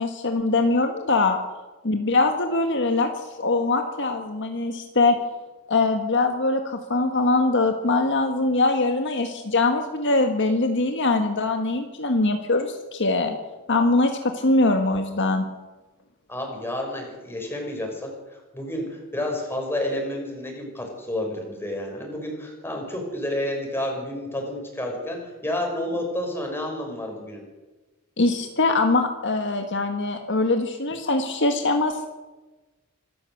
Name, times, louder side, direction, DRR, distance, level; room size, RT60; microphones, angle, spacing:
voice 1, 0.0-1.4 1.8-5.2 5.7-13.4 13.7-15.4 28.2-32.1, left 2 dB, 60° left, 5 dB, 1.7 m, -22 dB
voice 2, 16.3-18.1 18.5-27.4, left 1 dB, 10° left, 1 dB, 6.0 m, -30 dB
25.5 x 13.5 x 7.9 m, 1.2 s
head